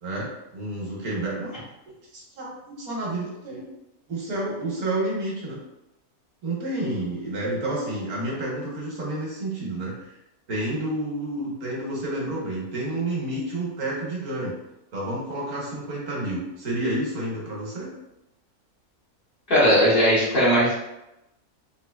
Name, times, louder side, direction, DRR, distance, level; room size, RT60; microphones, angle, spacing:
voice 1, 0.0-1.5 2.1-3.7 4.1-5.6 6.4-9.9 10.5-14.5 14.9-17.9, right 1 dB, 85° right, -4 dB, 1.6 m, -30 dB
voice 2, 19.5-20.7, equal, 40° left, -8 dB, 1.4 m, -18 dB
4.0 x 2.8 x 2.3 m, 0.90 s
omnidirectional pair, 1.5 m